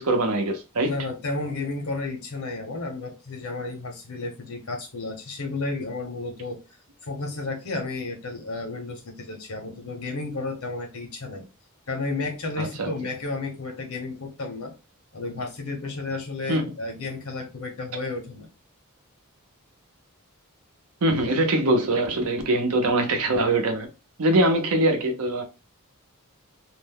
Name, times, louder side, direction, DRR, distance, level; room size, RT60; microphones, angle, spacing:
voice 1, 0.0-0.9 12.6-12.9 16.5-16.7 21.0-23.9 24.2-25.4, right 1 dB, 80° right, 0.7 m, -23 dB
voice 2, 0.8-6.6 7.0-11.4 11.9-14.7 15.1-18.5, left 3 dB, 75° left, 1.0 m, -32 dB
2.6 x 2.1 x 3.6 m
head